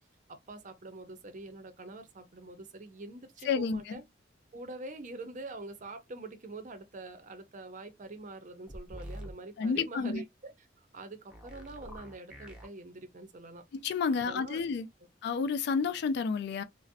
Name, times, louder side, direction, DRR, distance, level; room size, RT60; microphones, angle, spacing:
voice 1, 0.3-4.0 4.5-13.6 14.1-14.6, right 2 dB, 45° right, 0.5 m, -45 dB
voice 2, 3.5-4.0 9.6-10.2 13.7-14.9 15.2-16.6, left 5 dB, 60° left, 0.3 m, -30 dB
sound 1, 8.7-9.3 11.3-12.7, equal, 5° right, 0.6 m, -45 dB
2.5 x 2.0 x 2.6 m
head